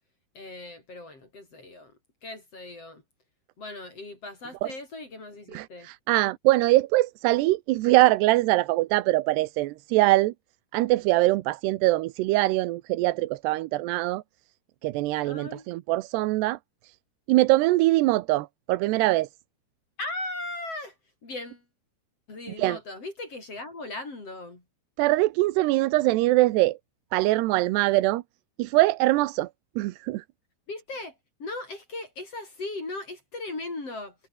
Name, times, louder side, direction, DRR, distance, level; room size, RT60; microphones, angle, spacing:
voice 1, 0.3-3.0 3.6-5.9 15.2-15.7 20.0-21.0 21.2-21.6 22.3-24.6 30.7-34.2, left 2 dB, 35° left, 6.3 m, -38 dB
voice 2, 5.5-10.3 10.7-14.2 14.8-16.6 17.3-19.3 22.6-22.8 25.0-26.8 27.1-28.2 28.6-29.5 29.8-30.2, right 18 dB, 90° right, 3.0 m, -23 dB
omnidirectional pair, 4.7 m